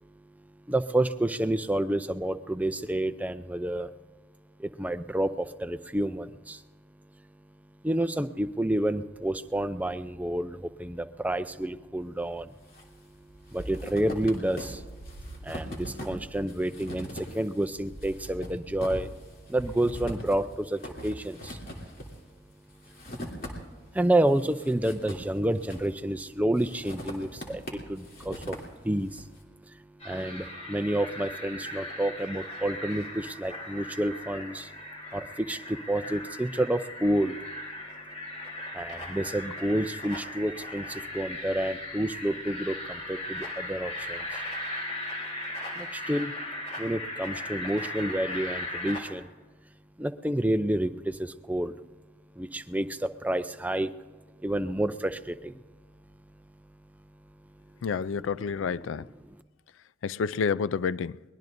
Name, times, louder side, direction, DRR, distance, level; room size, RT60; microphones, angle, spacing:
voice 1, 0.0-3.9 4.6-19.1 19.5-21.6 22.0-44.4 44.7-49.4 50.0-57.8 59.3-59.4, right 1 dB, 10° right, 0.5 m, -30 dB
sound 1, 12.3-12.9 13.1-23.9 24.3-26.1 26.6-29.2, equal, 50° left, 2.9 m, -41 dB
sound 2, 30.0-49.0, left 1 dB, 35° left, 3.7 m, -38 dB
voice 2, 57.8-59.1 60.0-61.2, left 6 dB, 85° left, 0.4 m, -29 dB
23.0 x 20.0 x 2.6 m
head